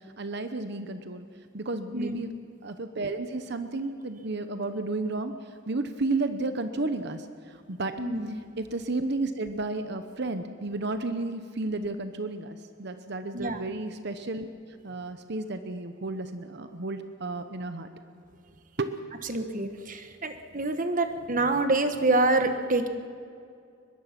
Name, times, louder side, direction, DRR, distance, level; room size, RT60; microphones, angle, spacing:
voice 1, 0.2-1.3 1.5-2.3 2.6-5.3 5.7-8.0 8.6-14.5 14.8-17.9 18.8-18.9, right 2 dB, 55° right, 9 dB, 1.0 m, -32 dB
voice 2, 8.0-8.4 13.3-13.6 19.2-22.9, right 2 dB, 40° right, 8 dB, 1.4 m, -26 dB
22.5 x 21.5 x 6.0 m, 2.4 s
head